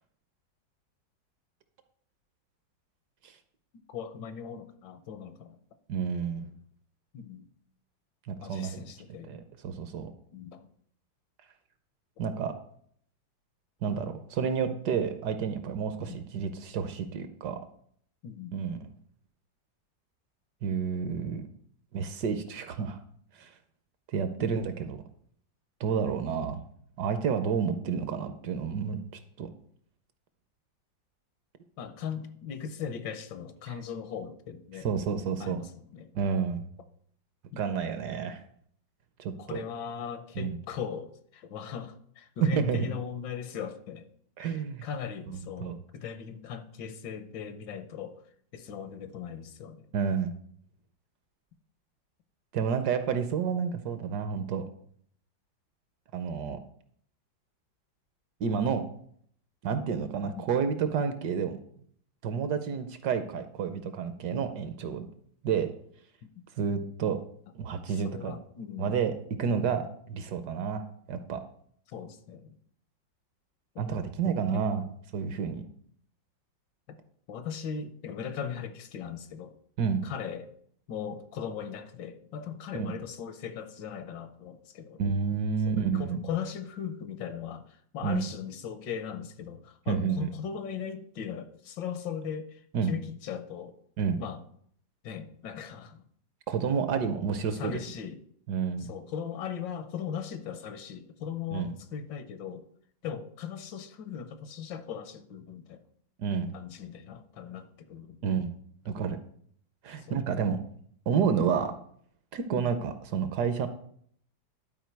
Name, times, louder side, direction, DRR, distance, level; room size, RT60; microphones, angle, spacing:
voice 1, 3.9-5.6 7.1-7.5 8.4-9.4 10.3-10.7 16.0-16.2 18.2-18.5 26.1-26.2 31.8-34.9 35.4-36.1 37.5-37.8 39.4-44.1 44.4-48.2 48.5-49.9 60.2-60.4 66.4-66.5 68.0-69.0 71.9-72.5 73.7-74.1 74.5-74.7 77.3-79.5 80.0-80.5 80.9-85.0 85.7-93.7 94.2-94.4 95.0-96.0 97.5-98.2 98.8-102.6 103.0-105.8 106.5-108.2 110.0-110.2 112.5-112.7, left 7 dB, 75° left, 10 dB, 1.4 m, -39 dB
voice 2, 5.9-6.5 8.3-8.8 9.3-10.1 12.2-12.5 13.8-17.6 18.5-18.8 20.6-21.5 21.9-23.0 23.4-23.5 24.1-25.0 25.8-26.6 27.0-29.0 29.4-29.5 33.7-33.8 34.8-35.6 36.1-36.7 37.6-38.4 39.2-39.6 40.4-40.6 42.4-42.9 44.4-44.9 45.3-45.8 49.9-50.3 52.5-54.6 56.1-56.6 58.4-58.8 59.6-61.6 62.2-65.1 65.4-65.7 66.6-67.2 67.5-68.3 68.8-69.1 69.4-70.8 71.1-71.4 73.8-74.9 75.1-75.6 79.8-80.0 82.7-82.9 85.0-86.2 88.0-88.2 89.9-90.3 92.7-92.9 94.0-94.2 96.5-97.7 98.5-98.9 101.5-101.7 106.2-106.5 108.2-108.5 108.8-109.2 109.8-110.6 111.1-111.7 112.3-113.7, right 6 dB, 70° right, 9 dB, 1.1 m, -30 dB
11.5 x 4.5 x 4.5 m, 0.63 s
omnidirectional pair, 2.1 m